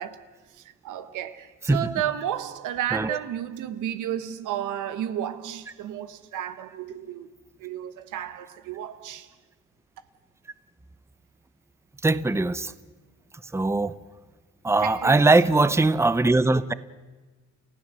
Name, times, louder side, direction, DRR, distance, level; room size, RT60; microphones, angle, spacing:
voice 1, 0.0-7.3 7.6-9.3 14.8-15.7, right 11 dB, 85° right, 1.4 m, -33 dB
voice 2, 12.0-12.7 13.5-13.9 14.6-16.7, right 2 dB, 10° right, 0.8 m, -21 dB
29.5 x 15.0 x 7.6 m
cardioid pair, 90°, 30 cm